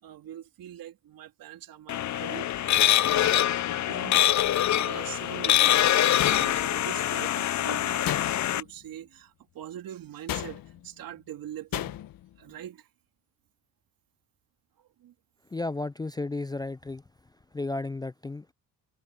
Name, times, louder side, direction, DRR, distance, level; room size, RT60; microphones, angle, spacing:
voice 1, 0.0-4.2 4.6-12.0 12.4-12.9 14.8-15.1, right 11 dB, 70° right, 3.3 m, -43 dB
sound 1, 1.9-8.6, left 12 dB, 50° left, 0.7 m, -24 dB
sound 2, 6.2-6.9 8.0-8.7 10.3-10.9 11.7-12.3, left 13 dB, 70° left, 1.5 m, -34 dB
voice 2, 15.5-17.0 17.5-18.5, left 2 dB, 10° left, 0.4 m, -33 dB
supercardioid pair, 70°, 36 cm